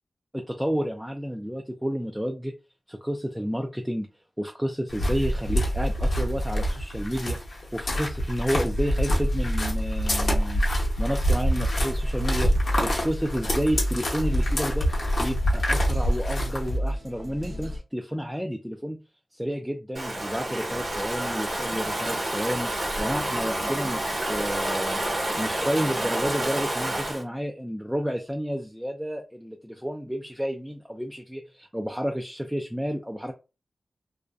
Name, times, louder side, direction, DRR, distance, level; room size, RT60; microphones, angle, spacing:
voice 1, 0.3-2.5 2.9-4.1 4.4-7.4 7.7-10.6 11.0-12.5 12.8-14.9 15.2-19.0 19.3-22.7 23.0-25.0 25.4-33.3, equal, 5° right, 3 dB, 0.3 m, -30 dB
sound 1, 4.9-16.8, equal, 60° left, 0.7 m, -26 dB
sound 2, 11.7-17.8, equal, 75° right, 0.6 m, -32 dB
Stream / Ocean, 19.9-27.2, right 1 dB, 50° right, 1.2 m, -29 dB
2.5 x 2.1 x 2.3 m, 0.29 s
wide cardioid pair, 95°, 0 cm